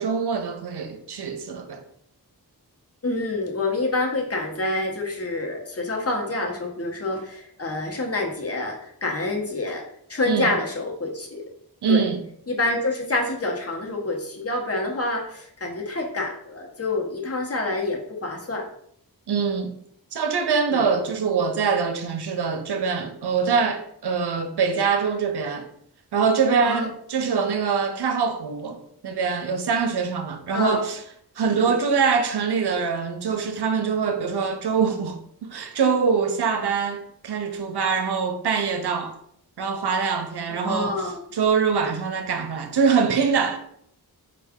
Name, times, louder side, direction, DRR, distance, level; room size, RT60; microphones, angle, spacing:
voice 1, 0.0-1.8 10.3-10.5 11.8-12.2 19.3-19.7 20.1-25.7 26.1-31.0 31.4-39.1 39.6-43.6, right 5 dB, 85° right, 0.7 m, -24 dB
voice 2, 3.0-11.4 11.9-12.1 12.5-18.7 20.7-20.9 26.6-26.9 30.5-30.8 31.4-31.8 40.6-41.2, left 2 dB, 40° left, 0.9 m, -27 dB
4.6 x 2.4 x 3.5 m
wide cardioid pair, 100°, 39 cm